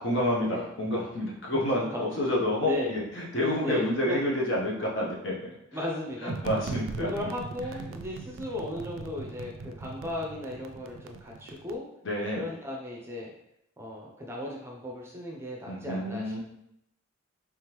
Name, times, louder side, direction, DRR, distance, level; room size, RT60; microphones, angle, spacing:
voice 1, 0.0-5.5 6.2-7.1 12.0-12.5 15.7-16.4, left 1 dB, 65° left, -2 dB, 0.9 m, -29 dB
voice 2, 1.5-2.1 2.6-2.9 3.6-4.2 5.7-6.3 7.0-11.8 12.4-13.3 13.8-16.4, left 1 dB, 10° right, -2 dB, 0.5 m, -36 dB
sound 1, 6.3-11.8, right 4 dB, 70° right, 0.3 m, -40 dB
3.5 x 3.5 x 3.0 m, 0.78 s
head